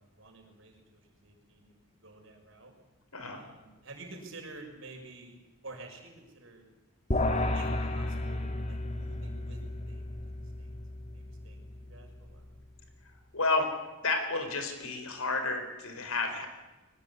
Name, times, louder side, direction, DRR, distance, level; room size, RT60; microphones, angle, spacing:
voice 1, 0.0-1.7 2.0-2.7 3.3-5.4 5.6-6.7 7.5-10.2 10.6-10.8 11.1-12.5, right 2 dB, 60° right, 2 dB, 6.3 m, -50 dB
voice 2, 3.1-3.4 13.3-13.7 14.0-16.5, left 3 dB, 75° left, 7 dB, 4.5 m, -31 dB
sound 1, 7.1-12.6, left 1 dB, 30° left, 2.1 m, -33 dB
23.0 x 19.5 x 9.9 m, 1.1 s
head